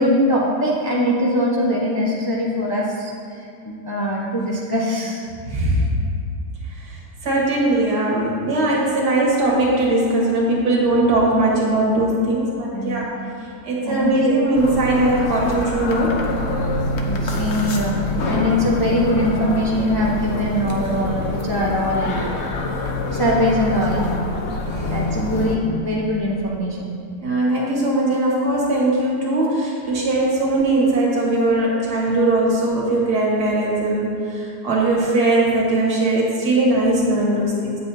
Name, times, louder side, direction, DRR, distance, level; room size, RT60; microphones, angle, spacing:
voice 1, 0.0-3.1 3.6-5.2 12.7-13.0 13.8-14.3 17.0-18.0 18.3-22.2 23.1-24.0 24.9-27.0 27.5-27.6 31.2-31.3, equal, 40° left, -5 dB, 0.3 m, -22 dB
voice 2, 5.5-5.9 6.8-7.0 7.2-13.1 13.7-16.2 24.8-24.9 27.2-37.8, right 2 dB, 70° right, -4 dB, 2.0 m, -20 dB
sound 1, 14.5-25.6, left 2 dB, 55° left, 0.8 m, -25 dB
8.9 x 7.7 x 2.7 m, 2.6 s
omnidirectional pair, 1.8 m